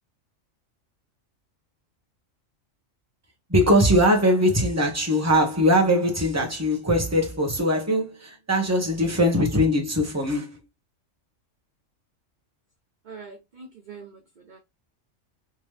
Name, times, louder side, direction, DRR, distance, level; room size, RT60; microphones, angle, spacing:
voice 1, 3.5-10.6, equal, 15° right, 1.0 m, -21 dB
voice 2, 13.1-14.2 14.5-14.6, right 5 dB, 45° right, 0.7 m, -43 dB
3.5 x 3.0 x 3.2 m
omnidirectional pair, 1.3 m